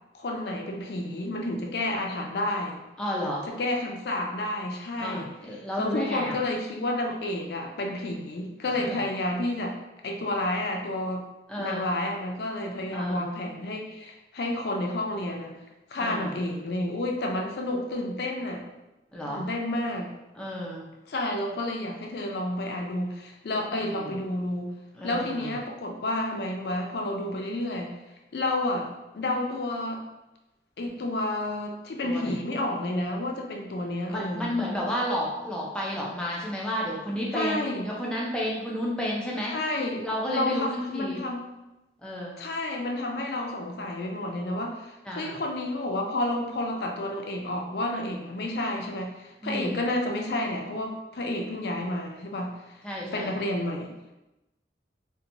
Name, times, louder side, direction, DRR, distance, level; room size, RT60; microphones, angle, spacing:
voice 1, 0.1-2.8 3.5-5.3 5.8-9.7 10.0-11.3 11.5-15.6 15.9-18.6 19.2-20.1 21.1-24.7 25.0-27.9 28.3-30.0 30.8-34.5 37.3-37.9 39.5-40.1 40.3-41.5 42.4-52.8 53.1-53.9, left 1 dB, 65° left, 1 dB, 0.4 m, -30 dB
voice 2, 3.0-3.5 5.0-6.4 8.6-9.0 11.5-11.9 12.9-13.2 16.0-16.3 19.1-19.4 20.4-20.9 23.8-24.1 25.0-25.6 32.0-32.4 34.1-39.5 40.0-41.2 42.0-42.4 45.1-45.4 49.4-49.7 52.8-53.3 53.7-53.8, equal, 5° left, -4 dB, 0.4 m, -32 dB
2.8 x 2.1 x 2.6 m, 1.0 s
head